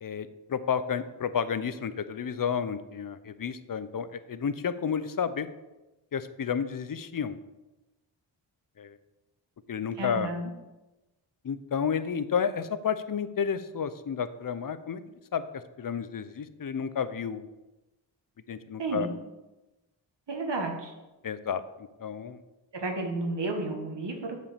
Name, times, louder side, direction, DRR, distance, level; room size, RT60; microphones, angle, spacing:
voice 1, 0.0-5.5 6.1-7.4 8.8-9.0 9.7-10.3 11.4-15.0 15.3-17.5 18.5-19.1 21.2-22.4, left 7 dB, 45° left, 13 dB, 0.7 m, -31 dB
voice 2, 10.0-10.5 18.8-19.2 20.3-20.9 22.7-24.4, right 2 dB, 65° right, 3 dB, 1.7 m, -32 dB
8.1 x 5.1 x 7.2 m, 1.1 s
wide cardioid pair, 85°, 45 cm